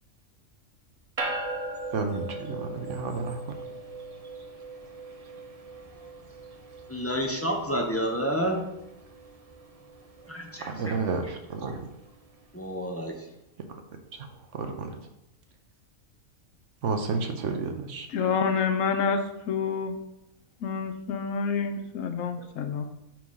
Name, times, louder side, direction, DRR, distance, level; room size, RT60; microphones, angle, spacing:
sound 1, 1.2-12.8, right 2 dB, 35° right, 0.6 m, -40 dB
voice 1, 1.9-3.4 10.6-11.9 14.1-14.3 14.5-14.9 16.8-18.1, right 4 dB, 65° right, 5 dB, 1.0 m, -31 dB
voice 2, 6.9-8.6 10.3-11.0 12.5-13.1, equal, 15° left, 0 dB, 0.6 m, -29 dB
voice 3, 18.1-20.0 20.6-22.8, left 6 dB, 70° left, 7 dB, 1.0 m, -28 dB
4.8 x 4.6 x 5.5 m, 0.86 s
omnidirectional pair, 1.4 m